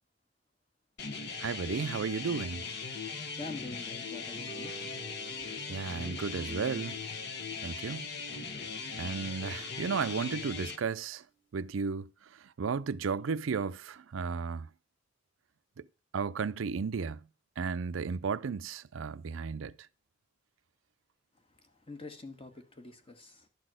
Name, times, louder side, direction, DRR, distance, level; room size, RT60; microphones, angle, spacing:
sound 1, 1.0-10.8, left 5 dB, 55° left, 1.2 m, -39 dB
voice 1, 1.4-2.6 5.7-7.0 7.6-8.1 8.9-11.2 11.5-12.1 12.6-14.7 15.8-15.9 16.1-17.2 17.6-19.7, right 5 dB, 85° right, 0.5 m, -34 dB
voice 2, 3.4-4.7 21.6-23.5, left 3 dB, 30° left, 1.4 m, -45 dB
sound 2, 4.3-10.8, right 5 dB, 85° left, 4.0 m, -53 dB
12.0 x 4.2 x 7.6 m
head